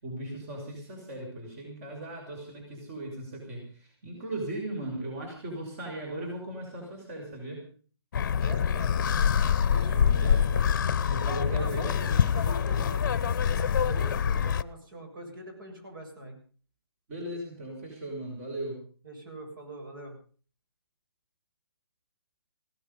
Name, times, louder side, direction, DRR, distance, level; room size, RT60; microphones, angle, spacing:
voice 1, 0.0-7.6 9.9-10.5 11.1-12.4 17.1-18.8, right 1 dB, 35° right, 1 dB, 6.2 m, -37 dB
sound 1, 8.1-14.6, left 7 dB, 45° left, 0.8 m, -25 dB
voice 2, 8.4-9.0 9.7-11.0 11.4-11.8 12.3-16.4 19.0-20.2, right 1 dB, 55° right, 3 dB, 7.2 m, -43 dB
17.0 x 15.5 x 5.5 m, 0.41 s
hypercardioid pair, 155°, 14 cm